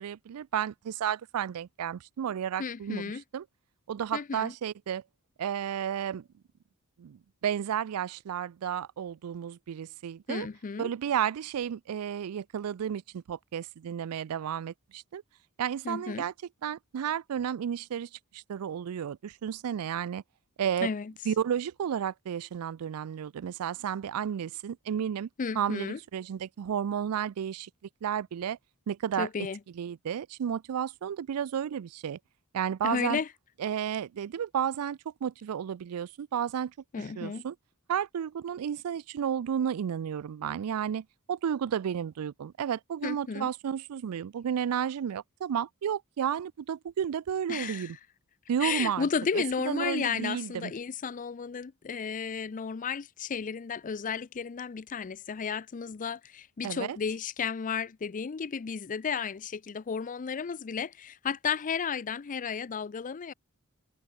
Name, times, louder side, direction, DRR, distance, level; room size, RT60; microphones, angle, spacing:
voice 1, 0.0-3.4 3.9-5.0 5.4-6.2 7.0-10.5 10.8-15.2 15.6-16.3 16.6-20.2 20.6-20.9 21.3-25.3 25.6-27.7 28.0-28.6 28.9-29.3 29.8-32.2 32.5-33.2 33.6-36.7 37.2-37.5 37.9-48.0 48.5-49.1 49.3-50.7 56.6-57.0, right 8 dB, 85° right, 0.4 m, -32 dB
voice 2, 2.6-3.2 4.1-4.5 10.3-10.9 15.8-16.3 20.8-21.1 25.4-26.0 29.2-29.6 32.8-33.3 36.9-37.4 43.0-43.5 47.5-47.9 48.6-63.3, left 6 dB, 35° left, 0.4 m, -33 dB
head